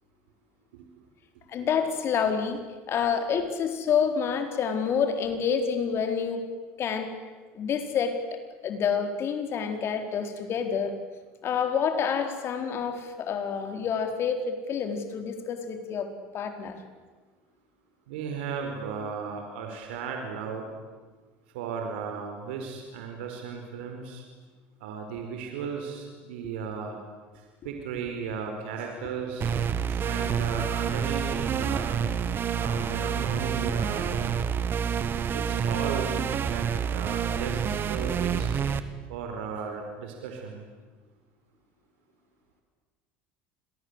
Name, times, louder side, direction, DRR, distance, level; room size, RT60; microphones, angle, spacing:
voice 1, 1.5-6.4 6.8-7.1 7.5-11.0 11.4-16.8, left 6 dB, 45° left, 6 dB, 4.5 m, -28 dB
voice 2, 18.1-20.7 21.5-24.2 24.8-27.0 27.6-29.5 29.9-32.0 32.5-34.2 35.3-36.1 36.3-38.5 39.1-40.6, right 6 dB, 85° right, 3 dB, 4.8 m, -35 dB
sound 1, 29.4-38.8, right 7 dB, 40° right, 2.0 m, -28 dB
29.5 x 22.5 x 8.3 m, 1.4 s
supercardioid pair, 95°, 6 cm